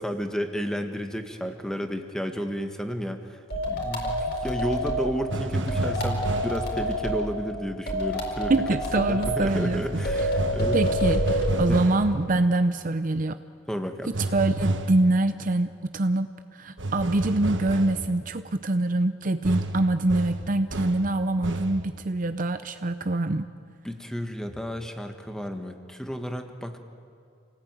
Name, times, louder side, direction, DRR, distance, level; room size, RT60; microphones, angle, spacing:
voice 1, 0.0-8.5 9.0-10.8 11.7-11.8 13.7-14.1 23.8-26.8, equal, 5° left, 5 dB, 1.6 m, -32 dB
sound 1, 3.5-5.1 5.7-7.2 7.9-9.4 10.0-11.6, equal, 55° left, 4.5 m, -27 dB
sound 2, 5.3-6.7 9.5-12.1 14.1-15.0 16.8-18.1 19.4-21.1 21.4-21.8, right 2 dB, 65° right, 1.5 m, -30 dB
voice 2, 8.5-9.8 10.7-13.4 14.2-23.5, right 2 dB, 40° right, 10 dB, 0.6 m, -25 dB
28.5 x 19.0 x 9.1 m, 2.4 s
head